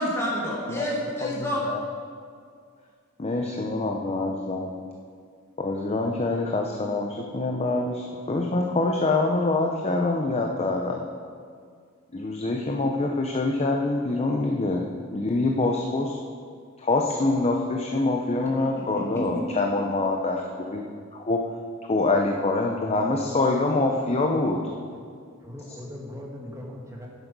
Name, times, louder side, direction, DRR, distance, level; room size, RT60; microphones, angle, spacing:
voice 1, 0.0-1.6 18.8-19.4, equal, 15° left, -5 dB, 2.1 m, -29 dB
voice 2, 1.4-1.8 3.2-4.7 5.6-11.0 12.1-16.2 16.8-20.8 21.1-21.4 21.9-24.6, left 2 dB, 30° left, 1 dB, 0.7 m, -25 dB
voice 3, 25.4-27.1, left 1 dB, 15° right, -1 dB, 1.6 m, -39 dB
10.5 x 8.1 x 5.3 m, 2.1 s
head